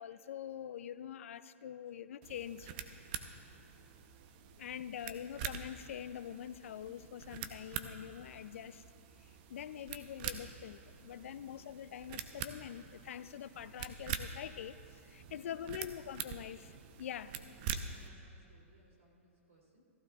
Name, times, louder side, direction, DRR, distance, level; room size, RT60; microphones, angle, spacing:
voice 1, 0.0-2.7 4.6-8.8 9.5-17.3, left 9 dB, 70° left, 14 dB, 0.4 m, -45 dB
sound 1, 2.2-18.1, right 8 dB, 45° right, 0.7 m, -45 dB
voice 2, 11.3-11.9 15.3-15.9 16.5-16.8 17.1-19.8, equal, 80° right, -1 dB, 2.8 m, -64 dB
15.5 x 15.0 x 2.4 m, 2.6 s
hypercardioid pair, 120°, 7 cm